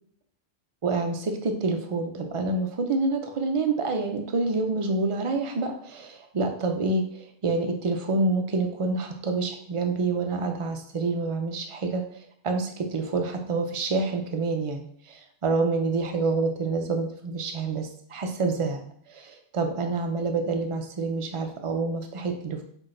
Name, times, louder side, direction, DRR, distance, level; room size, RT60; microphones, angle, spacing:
voice 1, 0.8-12.0 12.4-18.8 19.1-22.6, right 3 dB, 60° right, 4 dB, 0.3 m, -27 dB
5.7 x 2.6 x 2.5 m, 0.64 s
omnidirectional pair, 1.2 m